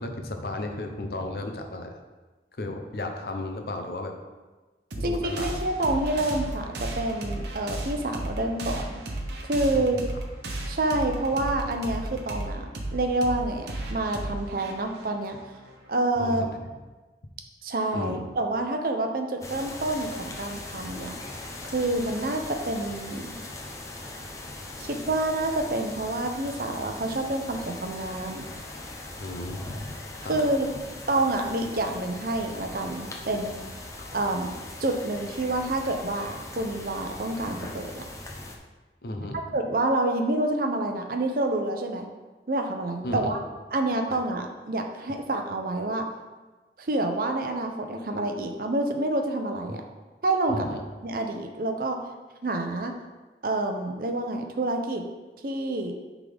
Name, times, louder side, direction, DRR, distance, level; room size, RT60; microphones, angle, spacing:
voice 1, 0.0-2.0 2.5-4.1 5.0-5.6 9.6-9.9 16.2-16.5 17.9-18.2 29.2-30.4 39.0-39.4 43.0-43.4 44.1-44.2 49.7-49.8 50.5-50.8, left 2 dB, 60° left, 4 dB, 0.7 m, -34 dB
sound 1, 4.9-16.0, right 1 dB, 75° right, 1.0 m, -34 dB
voice 2, 5.0-8.9 9.5-10.0 10.7-15.4 15.9-16.5 17.6-21.1 21.7-23.3 24.8-28.5 30.3-30.7 31.1-33.5 34.1-34.5 34.8-38.0 39.5-42.1 42.5-43.4 43.7-46.1 46.8-49.8 50.2-50.7 51.0-52.0 52.4-53.0 53.4-55.0 55.4-55.9, right 2 dB, 55° right, 4 dB, 0.7 m, -28 dB
sound 2, 19.4-38.6, left 2 dB, 20° left, 0.6 m, -40 dB
9.9 x 3.7 x 3.4 m, 1.2 s
head